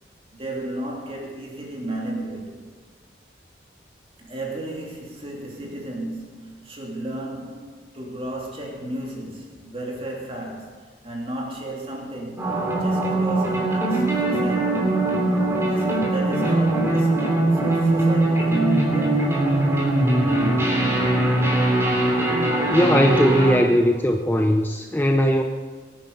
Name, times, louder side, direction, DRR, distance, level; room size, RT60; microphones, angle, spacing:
voice 1, 0.3-2.7 4.2-14.9 15.6-19.3, right 1 dB, 30° right, -2 dB, 3.1 m, -33 dB
sound 1, 12.4-23.6, right 1 dB, 15° right, 2.8 m, -21 dB
voice 2, 22.7-25.4, equal, 10° left, 4 dB, 0.6 m, -19 dB
22.5 x 9.3 x 5.5 m, 1.5 s
head